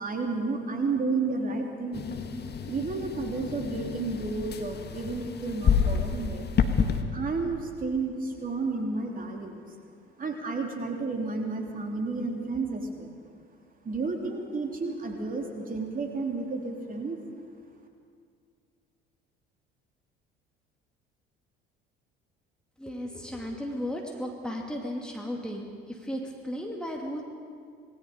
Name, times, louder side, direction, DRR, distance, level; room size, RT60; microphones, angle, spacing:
voice 1, 0.0-2.1 2.6-6.5 7.1-9.6 10.2-13.1 13.8-17.2, right 3 dB, 30° right, 2 dB, 3.2 m, -31 dB
sound 1, 1.9-7.0, left 6 dB, 35° left, 1.8 m, -29 dB
voice 2, 22.8-27.2, equal, 5° left, 0 dB, 2.4 m, -35 dB
27.0 x 20.0 x 5.3 m, 2.2 s
figure-of-eight pair, 60°, 30 cm